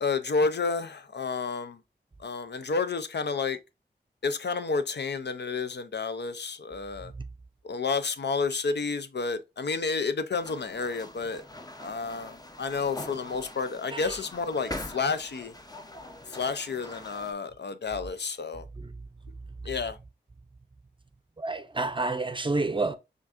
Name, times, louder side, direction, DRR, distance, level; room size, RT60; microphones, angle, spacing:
voice 1, 0.0-1.8 2.2-3.6 4.2-7.1 7.6-11.4 11.8-15.5 16.3-18.6 19.7-20.0, left 4 dB, 65° left, 0.5 m, -30 dB
sound 1, 10.3-17.3, left 1 dB, 20° left, 0.7 m, -43 dB
voice 2, 18.7-19.1 21.4-23.0, right 3 dB, 25° right, 0.6 m, -30 dB
5.9 x 2.5 x 2.5 m
cardioid pair, 40°, 19 cm